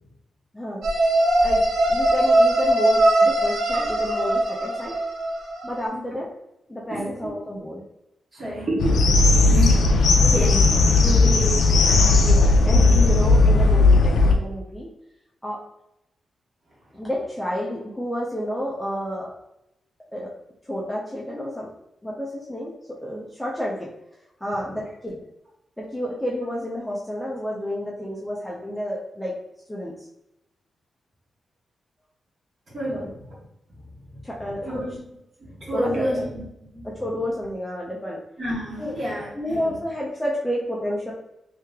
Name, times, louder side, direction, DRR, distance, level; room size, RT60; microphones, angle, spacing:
sound 1, 0.8-5.8, right 1 dB, 80° right, 0.7 m, -20 dB
voice 1, 1.9-5.0 5.6-6.3 6.7-7.8 12.2-14.9 15.4-15.6 16.9-19.3 20.1-20.3 20.7-21.7 22.0-23.9 24.4-25.2 25.8-29.4 29.7-30.0 32.9-33.1 34.2-34.8 35.7-36.3 36.8-38.2 38.8-39.0 39.3-41.1, equal, 5° left, -5 dB, 0.5 m, -30 dB
voice 2, 6.9-7.3 8.3-11.7 12.7-13.1 32.7-33.1 34.1-34.2 34.6-35.0 35.4-36.4 36.7-36.9 38.4-39.7, equal, 35° right, -5 dB, 1.3 m, -29 dB
sound 2, 8.8-14.4, left 3 dB, 90° left, 0.5 m, -16 dB
3.1 x 2.8 x 3.4 m, 0.86 s
wide cardioid pair, 170°, 0 cm